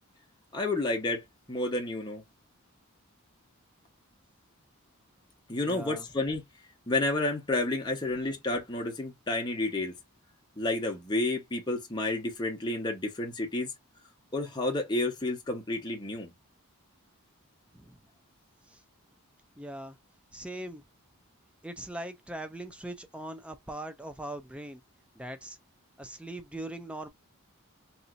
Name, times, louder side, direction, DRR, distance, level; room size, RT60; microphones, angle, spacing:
voice 1, 0.5-1.2 1.5-2.2 5.5-6.4 6.9-9.9 10.6-13.7 14.3-16.3, left 2 dB, 20° left, 0.9 m, -30 dB
voice 2, 5.6-6.1 17.7-18.0 18.7-18.8 19.6-20.0 20.3-20.8 21.6-24.8 25.1-25.6 26.0-27.1, right 1 dB, 5° right, 0.3 m, -40 dB
3.0 x 2.6 x 2.4 m
head